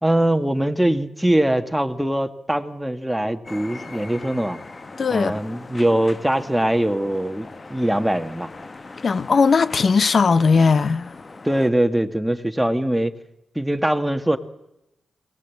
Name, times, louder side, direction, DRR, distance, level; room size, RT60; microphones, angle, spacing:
voice 1, 0.0-4.6 5.1-8.5 11.4-13.1 13.5-14.4, right 1 dB, 5° right, 1.7 m, -22 dB
sound 1, 3.4-11.7, left 3 dB, 35° left, 1.0 m, -40 dB
voice 2, 5.0-5.4 9.0-11.1, left 5 dB, 50° left, 0.9 m, -18 dB
22.5 x 18.5 x 8.4 m
cardioid pair, 85°, 0 cm